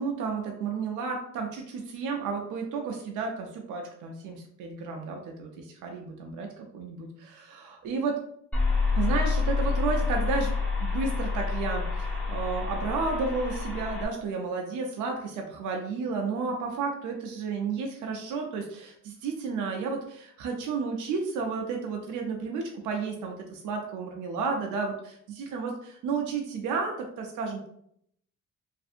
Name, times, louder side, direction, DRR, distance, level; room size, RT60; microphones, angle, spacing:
voice 1, 0.0-8.2 8.9-10.5 10.8-27.7, right 4 dB, 80° right, 2 dB, 0.5 m, -32 dB
sound 1, 8.5-14.1, left 4 dB, 5° left, 0.6 m, -28 dB
2.6 x 2.6 x 2.4 m, 0.69 s
cardioid pair, 90°, 30 cm